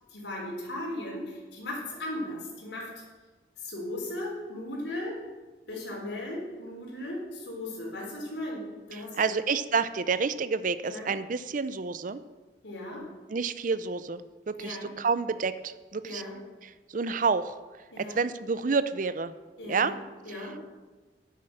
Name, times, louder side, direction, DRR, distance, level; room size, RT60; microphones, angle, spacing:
voice 1, 0.1-2.9 3.6-5.2 5.7-9.3 10.8-11.1 12.6-13.0 14.6-14.9 16.0-16.3 17.9-18.2 19.6-19.9 20.2-20.6, left 1 dB, 80° left, -2 dB, 3.9 m, -37 dB
voice 2, 8.9-12.2 13.3-16.2 16.6-17.6 18.0-19.3 19.7-19.9 20.3-20.5, right 5 dB, 50° right, 13 dB, 0.6 m, -29 dB
10.0 x 8.4 x 6.6 m, 1.3 s
head